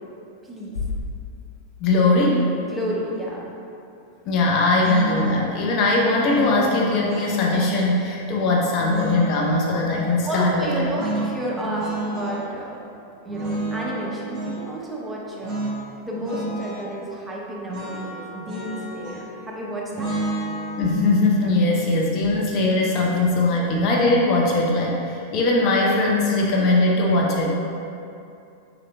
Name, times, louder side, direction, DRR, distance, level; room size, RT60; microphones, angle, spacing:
voice 1, 0.4-0.7 2.6-3.5 10.2-12.8 13.2-15.6 16.0-20.1, equal, 5° right, -5 dB, 0.7 m, -31 dB
Bass drum, 0.7-2.4, left 3 dB, 85° left, 0.4 m, -33 dB
voice 2, 1.8-2.5 4.3-10.8 20.8-27.5, left 2 dB, 40° left, -2 dB, 0.6 m, -20 dB
sound 1, 4.8-5.5 6.3-7.7 8.8-10.2 10.9-12.4 13.3-14.6 15.4-15.8 16.0-16.8 17.7-19.4 19.9-23.0, right 2 dB, 25° right, 1.5 m, -31 dB
4.9 x 4.3 x 2.3 m, 2.7 s
figure-of-eight pair, 90°, 0 cm